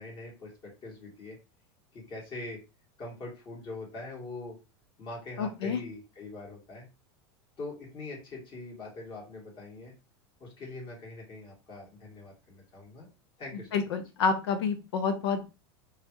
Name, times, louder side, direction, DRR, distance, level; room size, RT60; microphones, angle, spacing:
voice 1, 0.0-1.4 1.9-2.6 3.0-4.6 5.0-6.9 7.6-9.9 10.4-13.1 13.4-13.9, left 2 dB, 35° left, -2 dB, 1.9 m, -43 dB
voice 2, 5.4-5.8 13.7-15.4, left 5 dB, 80° left, 8 dB, 0.7 m, -28 dB
3.1 x 2.4 x 3.0 m, 0.29 s
supercardioid pair, 125°, 13 cm